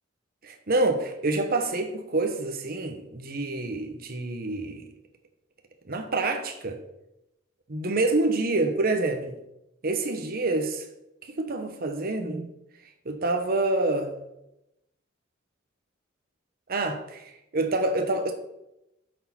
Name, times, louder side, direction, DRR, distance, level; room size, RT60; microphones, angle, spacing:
voice 1, 0.4-4.8 5.9-6.8 7.7-9.4 9.8-10.8 11.3-12.5 13.1-14.2 16.7-18.3, right 2 dB, 45° right, 5 dB, 0.9 m, -27 dB
10.5 x 6.4 x 4.3 m, 0.85 s
head